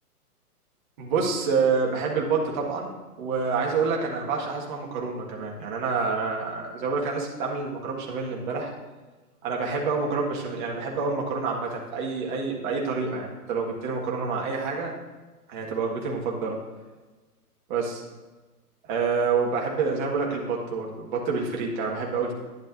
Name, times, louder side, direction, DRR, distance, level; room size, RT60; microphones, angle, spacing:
voice 1, 1.0-2.9 3.2-8.7 9.4-14.9 15.5-16.6 17.7-18.0 18.8-22.3, right 4 dB, 30° right, -1 dB, 1.7 m, -27 dB
11.0 x 10.5 x 2.7 m, 1.2 s
hypercardioid pair, 150°, 47 cm